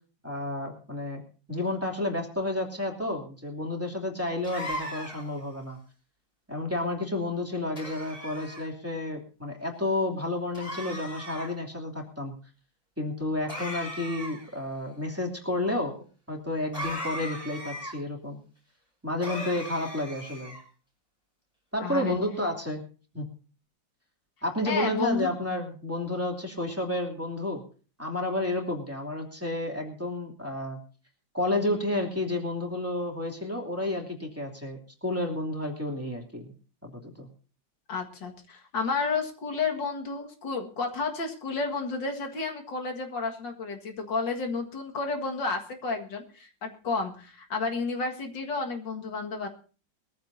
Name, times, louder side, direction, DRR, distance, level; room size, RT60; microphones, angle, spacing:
voice 1, 0.2-1.2 1.5-5.8 6.5-12.3 13.0-18.4 19.0-20.6 21.7-22.8 23.1-23.3 24.4-27.6 28.0-30.8 31.3-36.5 36.8-37.3, left 1 dB, 5° right, 0 dB, 2.7 m, -31 dB
sound 1, 4.4-5.4 7.8-8.6 10.5-11.5 13.5-14.5 16.7-17.9 19.2-20.6, equal, 15° left, 5.4 m, -38 dB
voice 2, 21.8-22.1 24.7-25.3 37.9-49.5, left 4 dB, 70° left, 4 dB, 2.5 m, -31 dB
21.5 x 14.5 x 2.7 m, 0.37 s
omnidirectional pair, 2.0 m